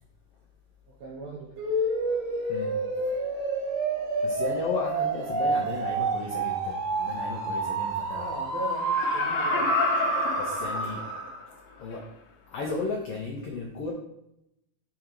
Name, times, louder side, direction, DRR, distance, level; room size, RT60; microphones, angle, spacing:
voice 1, 0.9-1.7 8.1-9.8, right 3 dB, 80° right, -1 dB, 1.5 m, -39 dB
sound 1, 1.6-11.4, right 3 dB, 60° right, 1.8 m, -29 dB
voice 2, 4.2-8.3 10.4-11.0 11.8-12.0 12.5-13.9, left 3 dB, 85° left, -1 dB, 1.3 m, -34 dB
Laughter, 8.8-11.4 11.9-12.0, left 4 dB, 70° left, 1.8 m, -29 dB
6.8 x 3.8 x 4.6 m, 0.82 s
omnidirectional pair, 4.0 m